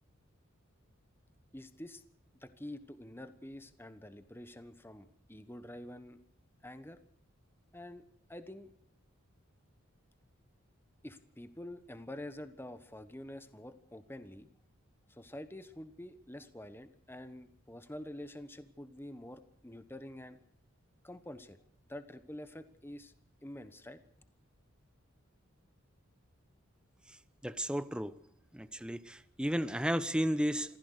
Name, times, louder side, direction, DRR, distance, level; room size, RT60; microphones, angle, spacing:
voice 1, 1.5-2.0 2.4-6.2 6.6-7.0 7.7-8.0 8.3-8.7 11.0-14.5 15.1-20.4 21.0-21.6 21.9-23.1 23.4-24.0, left 1 dB, 10° left, 11 dB, 1.2 m, -47 dB
voice 2, 27.4-28.1 28.5-30.8, equal, 5° right, 13 dB, 0.7 m, -33 dB
26.5 x 15.0 x 6.6 m, 0.67 s
head